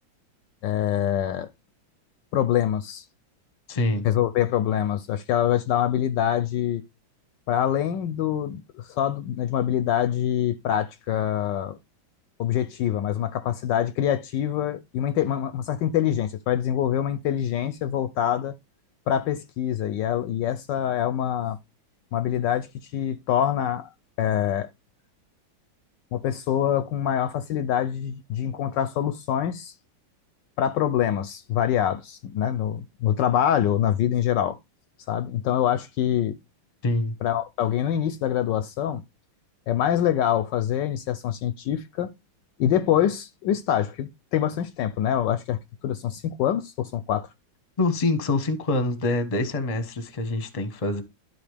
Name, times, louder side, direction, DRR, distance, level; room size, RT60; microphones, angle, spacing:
voice 1, 0.6-1.5 2.3-3.0 4.0-6.8 7.5-11.8 12.4-18.5 19.1-21.6 22.1-23.9 24.2-24.7 26.1-29.7 30.6-34.6 35.1-36.4 37.2-39.0 39.7-42.1 42.6-47.3, left 10 dB, 75° left, 1.1 m, -25 dB
voice 2, 3.7-4.1 36.8-37.1 47.8-51.0, left 2 dB, 25° left, 0.8 m, -25 dB
12.0 x 4.1 x 3.3 m
omnidirectional pair, 2.1 m